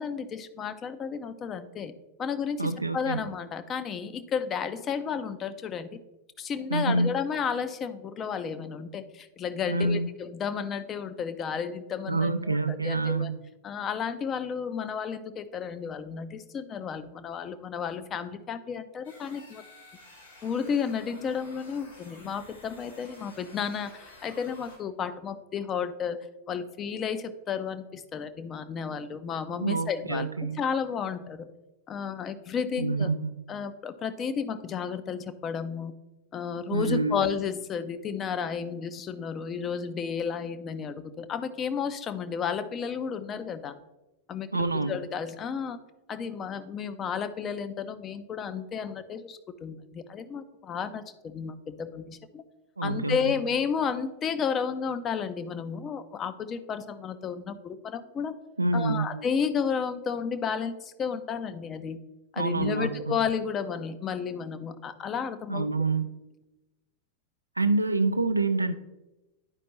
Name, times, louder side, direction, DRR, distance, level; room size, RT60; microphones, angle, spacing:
voice 1, 0.0-1.9 2.2-5.9 6.4-13.3 13.6-19.6 20.4-23.9 24.2-30.3 30.6-31.5 31.9-33.1 33.5-35.9 36.3-43.7 44.3-45.8 46.1-52.4 52.8-58.4 58.7-62.0 62.3-65.7, left 6 dB, 25° left, 11 dB, 0.5 m, -32 dB
voice 2, 2.6-3.2 6.7-7.1 9.7-10.1 12.1-13.4 29.6-30.6 32.8-33.3 36.7-37.2 44.5-45.0 52.8-53.3 58.6-59.1 62.4-63.2 65.5-66.1 67.6-68.7, right 3 dB, 80° right, 11 dB, 0.4 m, -27 dB
sound 1, 19.0-24.8, left 2 dB, 70° left, 2.4 m, -52 dB
10.5 x 5.0 x 2.9 m, 1.0 s
figure-of-eight pair, 90°, 0 cm